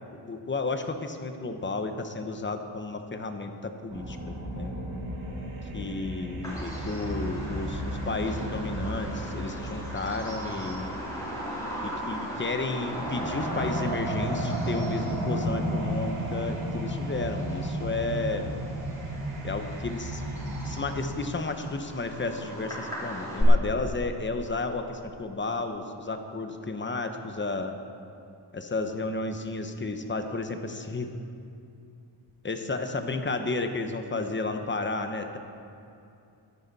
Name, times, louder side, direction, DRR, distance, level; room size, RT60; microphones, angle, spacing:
voice 1, 0.1-4.8 5.7-11.0 11.8-18.5 19.4-20.2 20.6-27.8 28.5-31.1 32.4-35.4, left 3 dB, 25° left, 6 dB, 0.9 m, -32 dB
sound 1, 3.9-21.0, right 1 dB, 75° right, 2.7 m, -34 dB
Bird vocalization bird call bird song, 6.4-23.4, equal, 5° left, 3.8 m, -38 dB
22.5 x 9.9 x 4.1 m, 2.7 s
wide cardioid pair, 155°, 48 cm